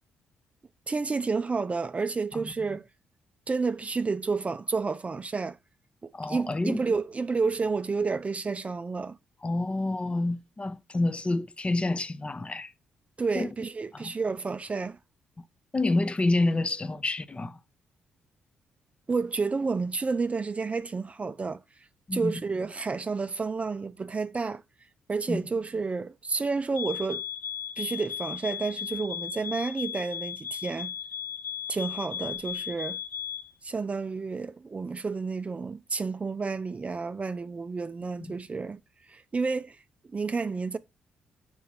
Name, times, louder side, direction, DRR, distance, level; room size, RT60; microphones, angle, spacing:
voice 1, 0.9-2.8 3.5-5.6 6.3-9.2 13.2-15.0 19.1-21.6 22.1-24.6 25.1-27.2 27.8-30.9 31.7-33.0 33.6-38.8 39.1-39.8 40.1-40.8, right 4 dB, 35° right, 0.4 m, -30 dB
voice 2, 6.1-6.8 9.4-12.7 13.3-13.5 13.9-14.1 15.7-17.6 22.1-22.4 25.3-25.4 38.2-38.4, left 2 dB, 25° left, 0.7 m, -28 dB
sound 1, 26.7-33.5, left 9 dB, 70° left, 1.1 m, -36 dB
6.2 x 2.8 x 5.6 m
hypercardioid pair, 45°, 4 cm